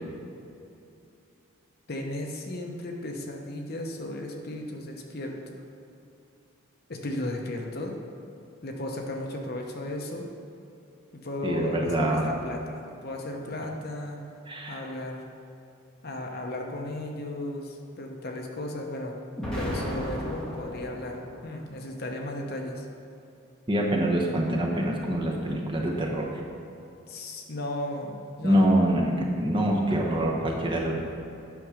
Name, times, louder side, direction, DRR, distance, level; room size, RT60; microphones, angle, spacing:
voice 1, 1.9-5.6 6.9-8.0 8.6-10.3 11.1-14.2 14.7-15.3 16.0-19.2 19.5-22.9 27.1-28.6, left 1 dB, 45° left, 1 dB, 0.9 m, -35 dB
voice 2, 11.4-12.3 14.5-14.8 23.7-26.3 28.4-31.2, right 1 dB, 25° right, -1 dB, 0.9 m, -25 dB
Explosion, 19.4-21.5, equal, 5° left, 1.8 m, -34 dB
9.2 x 6.3 x 5.0 m, 2.7 s
head